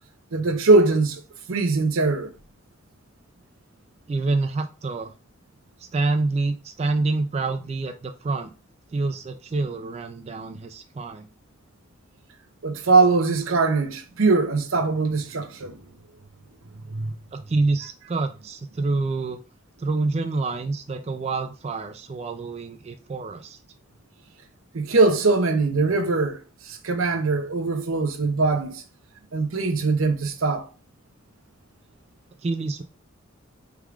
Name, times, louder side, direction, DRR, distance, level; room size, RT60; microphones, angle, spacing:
voice 1, 0.3-1.2 1.5-2.3 12.6-15.8 16.9-17.1 24.7-26.4 26.6-28.8 29.3-30.7, right 3 dB, 85° right, 0.7 m, -21 dB
voice 2, 4.1-5.1 5.8-8.5 8.9-11.3 17.3-19.4 19.8-23.6 32.4-32.8, right 3 dB, 30° right, 0.3 m, -27 dB
4.6 x 3.6 x 2.4 m
head